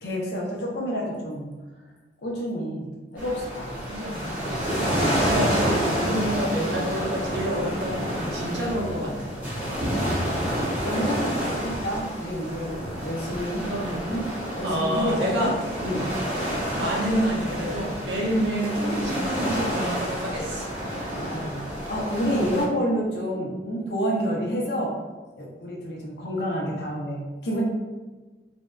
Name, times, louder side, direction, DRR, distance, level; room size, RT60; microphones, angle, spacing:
voice 1, 0.0-1.5 2.2-2.9 3.1-3.7 4.6-4.8 9.6-10.5 10.8-12.7 13.0-13.7 14.1-14.2 14.6-15.5 15.8-16.1 18.2-18.3 20.9-24.9 25.4-27.6, equal, 65° left, -3 dB, 0.6 m, -29 dB
sound 1, 3.2-22.6, equal, 10° right, 0.6 m, -29 dB
voice 2, 3.9-4.4 5.2-9.3 13.6-14.0 14.6-15.5 16.7-20.7, equal, 80° right, -4 dB, 0.7 m, -28 dB
2.6 x 2.2 x 2.2 m, 1.3 s
head